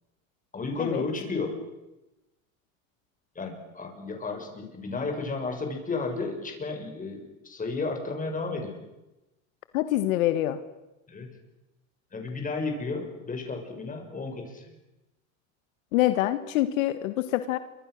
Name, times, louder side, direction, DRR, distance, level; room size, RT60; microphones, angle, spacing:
voice 1, 0.5-1.6 3.3-8.8 11.1-11.3 12.1-14.7, left 3 dB, 20° left, 4 dB, 6.4 m, -33 dB
voice 2, 9.7-10.6 15.9-17.6, left 14 dB, 80° left, 11 dB, 1.5 m, -25 dB
28.0 x 25.0 x 6.5 m, 1.0 s
supercardioid pair, 120°, 40 cm